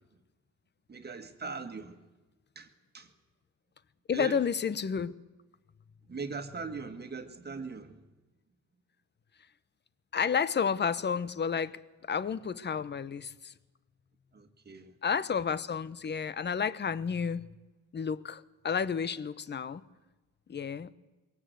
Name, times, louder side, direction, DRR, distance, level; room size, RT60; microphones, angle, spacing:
voice 1, 0.9-2.0 2.6-2.7 2.9-3.1 4.1-4.4 6.1-8.0 14.3-14.9, right 4 dB, 35° right, 1.8 m, -40 dB
voice 2, 4.1-5.1 10.1-11.8 12.1-13.5 15.0-17.4 17.9-19.8 20.5-20.9, left 6 dB, 35° left, 0.9 m, -31 dB
22.5 x 17.5 x 8.0 m
cardioid pair, 90°, 30 cm